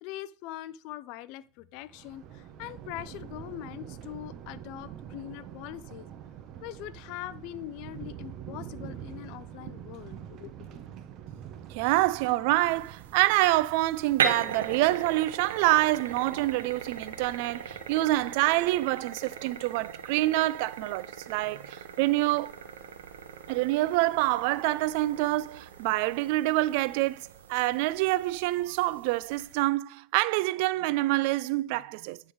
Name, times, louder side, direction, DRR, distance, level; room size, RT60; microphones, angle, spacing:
voice 1, 0.0-6.1 6.6-10.8, left 14 dB, 60° left, 0.5 m, -42 dB
Thunder, 1.9-19.2, right 9 dB, 50° right, 0.9 m, -46 dB
voice 2, 11.7-22.5 23.5-32.2, right 18 dB, 65° right, 0.3 m, -26 dB
sound 1, 12.7-29.6, right 7 dB, 85° right, 1.0 m, -39 dB
10.0 x 3.7 x 4.7 m
hypercardioid pair, 95°, 0 cm